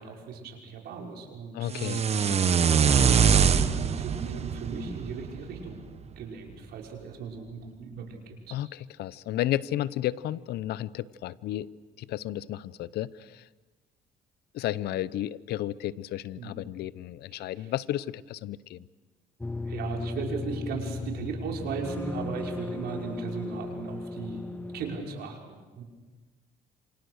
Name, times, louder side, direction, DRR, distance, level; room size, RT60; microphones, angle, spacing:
voice 1, 0.0-2.2 2.7-5.8 6.2-8.6 16.4-16.6 17.3-17.7 19.7-24.5 24.7-25.8, right 5 dB, 70° right, 1 dB, 5.9 m, -37 dB
voice 2, 1.5-2.6 8.5-11.7 12.0-13.4 14.5-18.8, left 13 dB, 75° left, 18 dB, 0.8 m, -33 dB
sound 1, 1.7-5.8, right 7 dB, 40° right, 1.3 m, -23 dB
sound 2, 19.4-25.0, left 3 dB, 10° left, 1.0 m, -36 dB
28.0 x 26.5 x 6.5 m, 1.2 s
cardioid pair, 110°, 17 cm